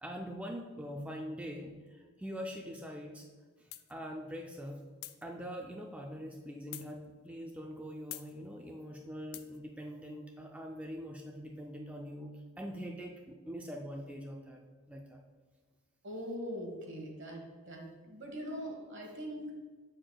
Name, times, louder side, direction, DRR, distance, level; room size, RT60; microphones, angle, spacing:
voice 1, 0.0-3.2 3.9-4.8 5.2-12.3 12.6-14.6 14.9-15.2, equal, 5° right, 0 dB, 0.4 m, -43 dB
sound 1, 3.7-3.9 5.0-5.2 6.7-6.9 8.1-8.3 9.3-9.6, left 14 dB, 85° left, 0.4 m, -45 dB
voice 2, 16.0-19.5, equal, 60° right, 1 dB, 1.3 m, -42 dB
7.8 x 6.5 x 2.2 m, 1.4 s
head